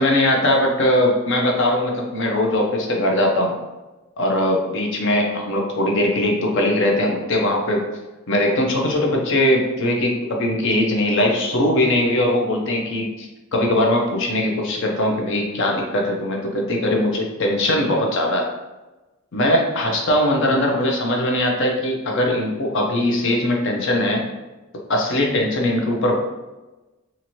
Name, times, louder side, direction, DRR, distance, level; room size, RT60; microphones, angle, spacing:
voice 1, 0.0-3.6 4.2-7.8 8.3-13.3 13.5-18.5 19.3-24.2 24.9-26.2, left 1 dB, 60° left, 1 dB, 0.6 m, -20 dB
2.8 x 2.6 x 2.9 m, 1.1 s
head